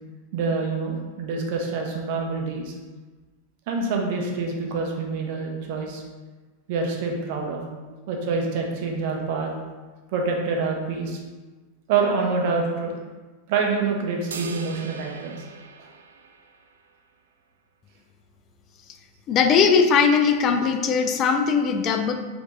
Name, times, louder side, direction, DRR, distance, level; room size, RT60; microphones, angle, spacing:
voice 1, 0.3-2.7 3.7-6.0 6.7-7.6 8.1-9.5 10.1-11.2 11.9-12.9 13.5-15.4, right 4 dB, 55° right, 1 dB, 0.8 m, -26 dB
sound 1, 14.3-16.9, right 5 dB, 75° right, 0.3 m, -40 dB
voice 2, 19.3-22.1, left 6 dB, 35° left, 6 dB, 0.4 m, -19 dB
4.4 x 2.8 x 3.7 m, 1.3 s
figure-of-eight pair, 90°, 0 cm